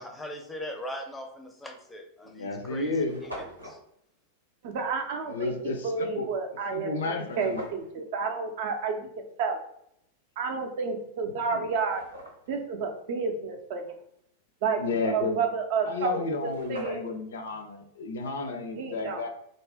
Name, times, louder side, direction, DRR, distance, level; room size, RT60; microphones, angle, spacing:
voice 1, 0.0-3.8, equal, 5° left, 2 dB, 0.5 m, -40 dB
sound 1, 1.4-1.6 2.3-2.4 2.6-2.7 2.9-3.8 7.2-7.9 10.8-10.9 11.5-12.6 16.0-16.1 16.3-17.3, equal, 90° right, 0.7 m, -43 dB
voice 2, 2.3-3.2 5.3-6.3 6.7-7.6 11.5-11.6 14.8-15.4 15.8-19.3, left 3 dB, 65° left, 6 dB, 0.4 m, -32 dB
voice 3, 4.6-9.6 10.4-12.0 12.5-13.8 14.6-17.0 18.8-19.3, right 5 dB, 50° right, 4 dB, 0.4 m, -31 dB
2.4 x 2.1 x 3.4 m, 0.74 s
figure-of-eight pair, 90°, 0 cm